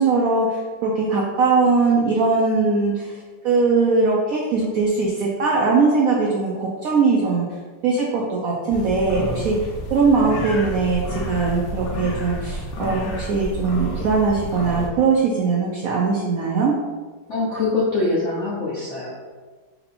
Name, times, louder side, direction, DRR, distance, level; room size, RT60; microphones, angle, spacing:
voice 1, 0.0-3.1 3.4-7.5 7.8-9.6 9.9-16.7, right 4 dB, 75° right, -2 dB, 0.7 m, -20 dB
sound 1, 8.7-14.9, equal, 85° left, 1.5 m, -30 dB
voice 2, 17.3-19.1, left 3 dB, 70° left, -6 dB, 0.7 m, -23 dB
4.3 x 2.7 x 4.1 m, 1.4 s
omnidirectional pair, 2.1 m